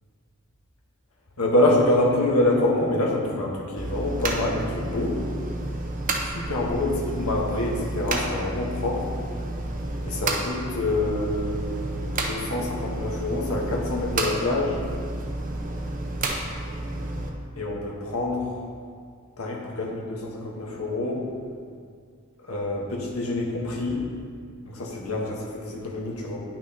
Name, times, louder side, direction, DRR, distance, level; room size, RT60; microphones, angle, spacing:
voice 1, 1.4-5.2 6.3-9.1 10.0-14.8 17.6-18.4 19.4-21.2 22.5-24.1 24.6-26.4, left 1 dB, 90° left, -1 dB, 1.3 m, -26 dB
sound 1, 3.8-17.3, right 2 dB, 40° right, 0.7 m, -31 dB
10.5 x 6.0 x 2.9 m, 2.1 s
head